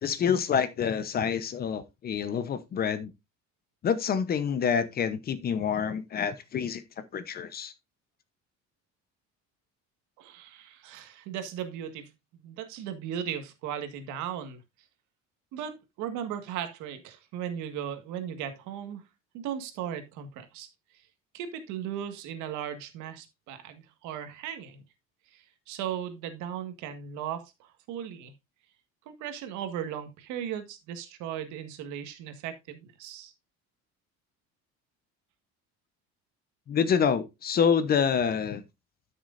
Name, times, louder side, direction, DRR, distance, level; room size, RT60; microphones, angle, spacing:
voice 1, 0.0-3.1 3.8-6.8 7.1-7.7 36.7-38.6, left 7 dB, 30° left, 0.8 m, -27 dB
voice 2, 10.2-12.1 12.4-14.6 15.5-19.0 19.3-20.7 21.3-24.8 25.3-28.3 29.0-33.3, right 9 dB, 80° right, 1.7 m, -37 dB
12.5 x 6.4 x 2.6 m
cardioid pair, 160°, 30 cm